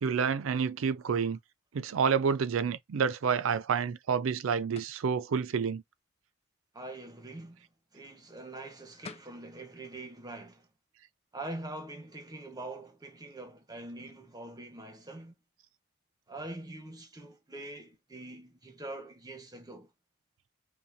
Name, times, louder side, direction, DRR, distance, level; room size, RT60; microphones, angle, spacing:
voice 1, 0.0-1.4 1.7-5.8, right 6 dB, 85° right, 0.4 m, -29 dB
sound 1, 4.7-5.1 8.7-8.8 9.0-9.4, left 5 dB, 30° left, 0.4 m, -47 dB
voice 2, 6.7-10.7 11.3-15.3 16.3-19.9, right 2 dB, 20° right, 1.0 m, -44 dB
5.6 x 2.2 x 2.6 m
head